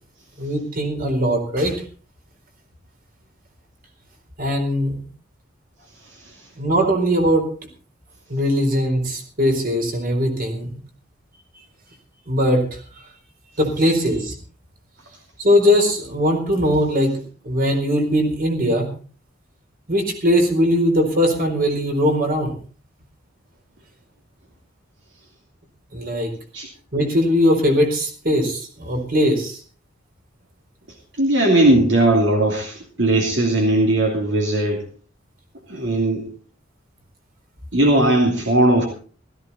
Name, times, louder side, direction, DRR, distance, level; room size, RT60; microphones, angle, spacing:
voice 1, 0.4-1.7 4.4-5.1 6.6-7.5 8.3-10.7 12.3-12.8 13.6-14.3 15.4-18.9 19.9-22.5 25.9-26.3 26.9-29.6, equal, 50° right, 4 dB, 4.3 m, -20 dB
voice 2, 31.2-34.8 35.7-36.3 37.7-38.8, right 1 dB, 70° right, 0 dB, 2.7 m, -18 dB
16.0 x 14.5 x 4.2 m, 0.41 s
head